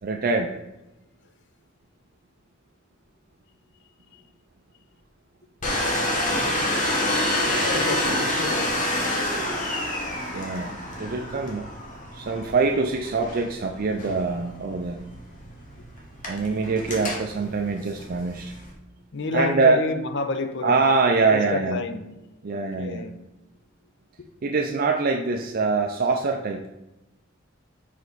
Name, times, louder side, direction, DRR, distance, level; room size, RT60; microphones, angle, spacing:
voice 1, 0.0-0.5 10.3-10.7 11.0-15.0 16.3-18.5 19.3-19.8 20.6-21.8 22.4-23.1 24.4-26.6, right 4 dB, 50° right, 3 dB, 0.4 m, -24 dB
Domestic sounds home sounds, 5.6-18.7, left 1 dB, 40° left, 1.2 m, -28 dB
voice 2, 6.6-6.9 7.3-9.0 19.1-20.9 21.3-23.2 24.2-24.3, left 3 dB, 65° left, 9 dB, 0.6 m, -30 dB
5.5 x 5.0 x 4.0 m, 0.98 s
head